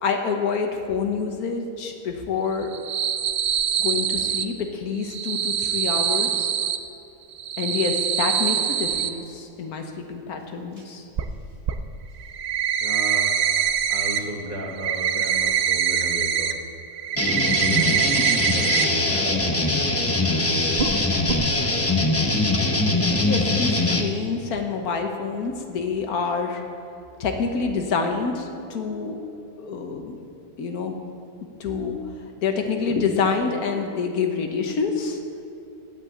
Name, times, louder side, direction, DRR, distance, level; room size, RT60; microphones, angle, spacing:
voice 1, 0.0-2.7 3.8-6.5 7.6-11.0 23.2-26.6 27.2-29.2 29.6-30.2 30.6-30.9 31.6-32.0 32.4-35.2, left 5 dB, 85° left, 4 dB, 1.5 m, -27 dB
sound 1, 2.6-4.4 5.0-6.8 7.3-9.1 11.2-11.3 11.7-11.8 12.2-14.2 14.5-16.5 16.9-18.8 19.2-19.3 19.7-19.8 20.8-21.0 21.3-21.4, right 8 dB, 65° right, 0.5 m, -24 dB
voice 2, 12.8-13.3 13.9-16.6 17.7-18.1 18.4-19.8 26.2-26.3 27.1-27.2, equal, 35° right, -1 dB, 1.5 m, -35 dB
sound 2, 17.2-24.0, left 2 dB, 20° left, 0.4 m, -22 dB
8.9 x 8.2 x 8.3 m, 2.8 s
omnidirectional pair, 1.5 m